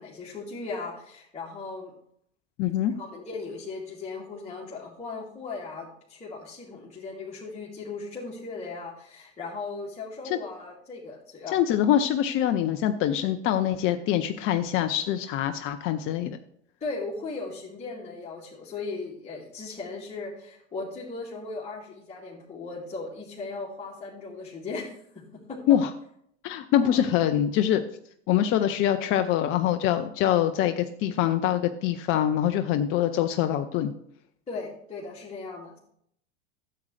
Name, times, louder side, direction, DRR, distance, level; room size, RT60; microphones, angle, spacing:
voice 1, 0.0-1.9 2.9-11.6 16.8-25.2 25.5-25.6 26.8-27.0 34.5-35.8, left 3 dB, 20° left, -7 dB, 2.6 m, -37 dB
voice 2, 2.6-2.9 10.3-10.4 11.5-16.4 25.7-25.9 26.4-27.8 28.3-33.9, left 11 dB, 35° left, 8 dB, 0.6 m, -24 dB
13.0 x 7.7 x 3.3 m, 0.69 s
figure-of-eight pair, 85°, 35 cm